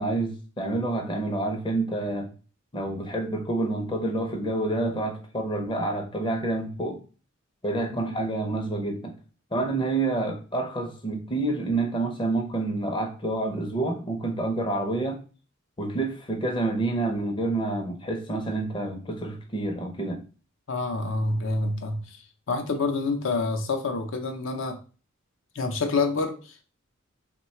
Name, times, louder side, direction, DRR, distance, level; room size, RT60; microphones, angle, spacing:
voice 1, 0.0-2.3 2.7-7.0 7.6-9.1 9.5-15.2 15.8-20.2, right 2 dB, 25° left, 0.5 m, -28 dB
voice 2, 20.7-22.2 22.5-24.8 25.5-26.6, left 3 dB, 70° left, 0.5 m, -28 dB
3.1 x 2.2 x 4.2 m
head